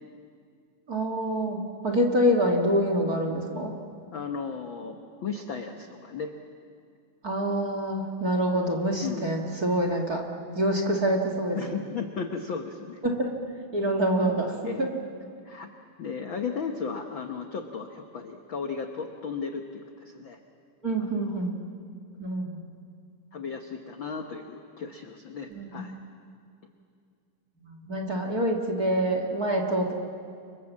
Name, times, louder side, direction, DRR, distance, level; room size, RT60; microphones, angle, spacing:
voice 1, 0.9-3.8 7.2-10.3 10.5-11.8 13.0-13.3 13.7-14.9 20.8-21.6 22.2-22.6 25.5-25.8 27.6-29.9, right 1 dB, 30° right, 2 dB, 2.1 m, -26 dB
voice 2, 4.1-6.3 9.0-9.3 11.5-13.0 14.6-14.9 15.4-15.7 16.0-20.4 21.2-21.4 23.3-26.0, left 5 dB, 60° left, 4 dB, 1.3 m, -35 dB
30.0 x 25.0 x 7.4 m, 2.3 s
omnidirectional pair, 3.9 m